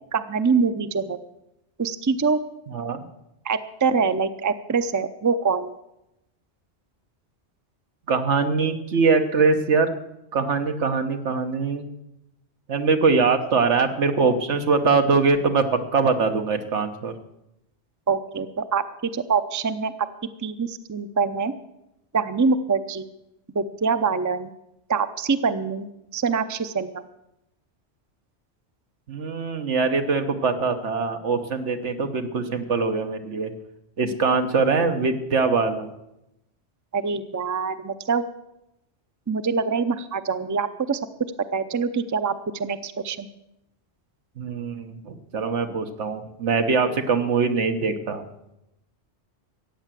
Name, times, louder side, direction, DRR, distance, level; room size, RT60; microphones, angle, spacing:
voice 1, 0.1-1.2 1.8-2.4 3.4-5.7 18.1-19.9 20.4-21.5 22.1-23.1 23.5-24.5 24.9-25.9 26.1-27.0 36.9-38.2 39.3-41.0 41.5-43.3, right 5 dB, 20° right, 11 dB, 0.5 m, -24 dB
voice 2, 2.7-3.1 8.1-9.9 10.3-11.8 12.7-17.1 29.1-33.5 34.0-35.9 44.4-48.2, right 4 dB, 85° right, 6 dB, 1.5 m, -22 dB
14.5 x 9.1 x 7.5 m, 0.87 s
omnidirectional pair, 1.2 m